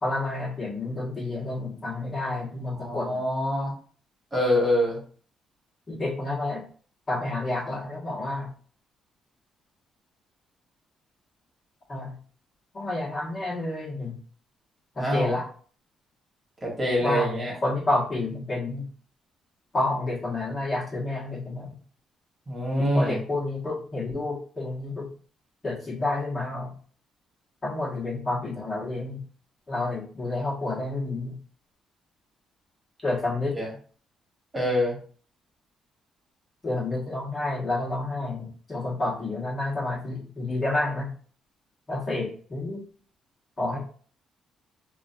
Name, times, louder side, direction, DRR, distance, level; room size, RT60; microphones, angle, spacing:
voice 1, 0.0-3.2 5.9-6.6 7.1-8.5 11.9-12.1 12.7-14.2 14.9-15.5 17.0-18.9 19.7-21.8 22.8-25.1 25.6-26.7 27.6-29.2 29.7-31.4 33.0-33.6 36.6-41.1 41.9-42.8 43.6-43.8, left 2 dB, 35° left, -5 dB, 1.3 m, -29 dB
voice 2, 2.8-3.7 4.3-5.0 15.0-15.3 16.6-17.5 22.5-23.2 33.5-33.7 34.5-35.0, equal, 20° right, -3 dB, 1.4 m, -25 dB
3.0 x 2.4 x 2.7 m, 0.44 s
cardioid pair, 90°, 0 cm